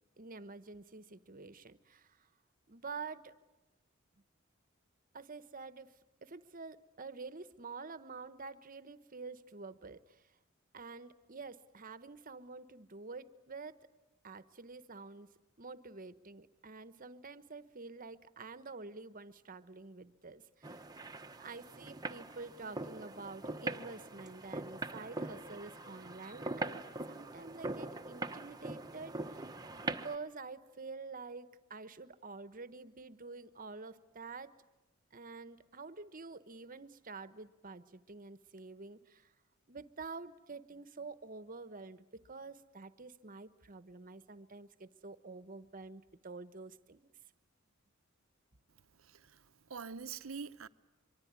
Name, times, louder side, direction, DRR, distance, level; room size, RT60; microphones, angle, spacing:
voice 1, 0.2-2.3 2.7-3.3 5.1-10.3 10.7-13.8 14.2-15.3 15.6-20.8 21.4-29.5 29.8-34.5 35.1-39.3 39.7-47.1, right 4 dB, 40° right, 1.1 m, -48 dB
sound 1, 20.6-30.2, right 2 dB, 20° right, 1.0 m, -42 dB
voice 2, 49.0-49.4 49.7-50.7, right 5 dB, 75° right, 0.8 m, -44 dB
24.5 x 24.0 x 9.6 m
head